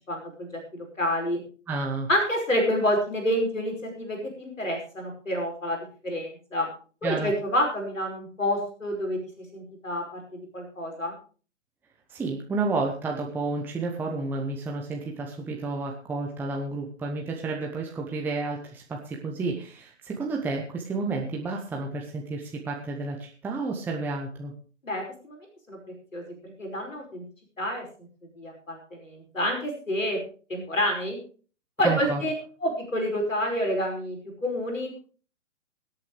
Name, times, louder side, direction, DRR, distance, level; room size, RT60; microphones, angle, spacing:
voice 1, 0.1-1.4 2.1-6.7 7.0-10.2 10.5-11.2 24.8-25.4 25.7-25.8 26.1-27.2 27.6-27.8 28.4-30.2 30.5-31.2 31.8-32.3 32.6-35.0, equal, 80° left, 2 dB, 5.3 m, -28 dB
voice 2, 1.7-2.1 7.0-7.3 12.1-24.5 31.8-32.2, right 3 dB, 5° right, 0 dB, 0.9 m, -31 dB
24.0 x 8.5 x 3.3 m, 0.38 s
figure-of-eight pair, 125°, 38 cm